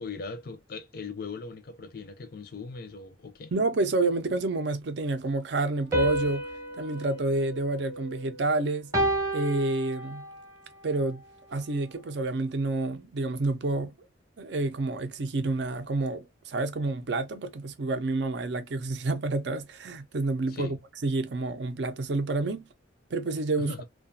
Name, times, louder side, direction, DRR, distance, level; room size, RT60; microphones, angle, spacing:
voice 1, 0.0-3.5 20.5-20.8 23.6-23.8, left 4 dB, 50° left, 0.5 m, -39 dB
voice 2, 3.5-6.4 6.8-8.9 9.3-10.3 10.8-11.2 11.5-13.9 14.4-20.8 21.0-22.7 23.1-23.7, right 2 dB, 60° right, 0.5 m, -29 dB
sound 1, 5.9-8.4 8.9-10.5, right 1 dB, 15° right, 0.7 m, -30 dB
2.3 x 2.2 x 2.6 m
head